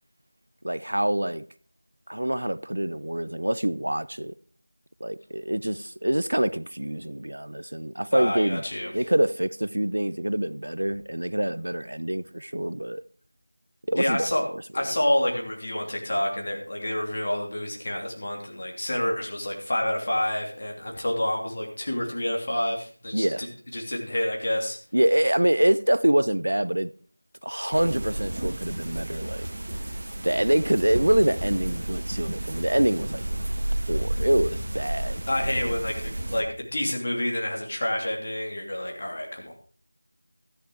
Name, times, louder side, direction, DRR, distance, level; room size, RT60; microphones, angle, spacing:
voice 1, 0.6-1.4 2.1-4.3 5.0-8.6 8.9-13.0 13.9-14.3 23.1-23.4 24.9-26.9 27.4-29.5 30.2-33.2 33.9-35.2, right 1 dB, 90° right, 0.6 m, -25 dB
voice 2, 8.1-8.9 13.9-14.4 14.7-24.8 35.3-39.5, left 1 dB, 35° left, 2.8 m, -28 dB
sound 1, 27.7-36.4, right 1 dB, 45° right, 1.5 m, -31 dB
13.0 x 10.5 x 4.6 m
figure-of-eight pair, 180°, 0 cm